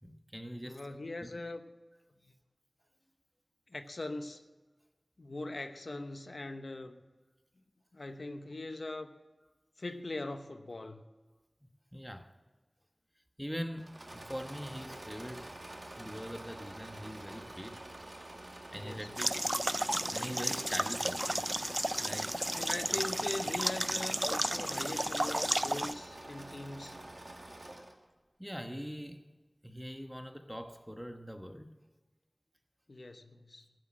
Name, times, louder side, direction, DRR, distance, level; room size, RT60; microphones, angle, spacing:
voice 1, 0.0-0.9 1.2-1.3 11.9-12.3 13.4-15.5 16.0-17.8 18.7-19.4 20.1-21.4 22.0-22.4 28.4-29.2 29.6-31.7, equal, 5° right, 1.2 m, -42 dB
voice 2, 0.6-1.7 2.2-2.3 3.7-4.4 5.2-7.0 7.9-9.1 9.8-11.0 18.8-19.1 22.5-27.0 32.9-33.7, left 2 dB, 80° left, 0.9 m, -41 dB
Engine / Mechanisms, 13.8-28.0, right 1 dB, 55° right, 1.7 m, -48 dB
sound 1, 19.2-25.9, right 1 dB, 20° right, 0.3 m, -33 dB
16.0 x 7.6 x 7.5 m
wide cardioid pair, 40°, 0 cm